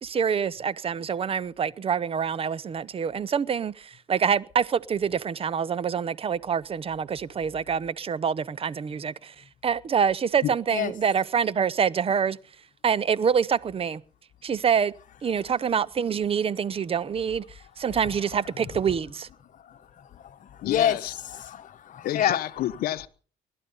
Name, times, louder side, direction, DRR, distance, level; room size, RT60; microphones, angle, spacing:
voice 1, 0.0-9.3 9.6-12.4 12.8-14.0 14.4-14.9 15.2-17.4 17.8-19.3, right 7 dB, 35° right, 0.8 m, -26 dB
voice 2, 19.7-21.0 21.3-22.4, left 10 dB, 50° left, 1.3 m, -28 dB
voice 3, 20.6-21.2 22.0-23.1, left 13 dB, 65° left, 0.8 m, -29 dB
21.0 x 12.0 x 5.5 m
cardioid pair, 110°, 17 cm